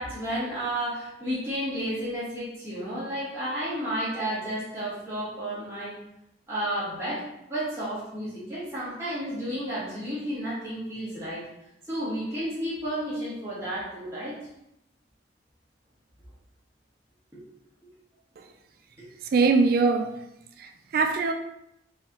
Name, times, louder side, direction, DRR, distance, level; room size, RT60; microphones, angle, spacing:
voice 1, 0.0-5.9 6.5-7.2 7.5-11.4 11.9-14.4 17.3-17.4 19.0-19.1, right 1 dB, 15° right, -12 dB, 1.6 m, -32 dB
voice 2, 19.3-20.2 20.6-21.3, right 4 dB, 50° right, 6 dB, 0.3 m, -22 dB
4.6 x 3.4 x 2.9 m, 0.83 s
head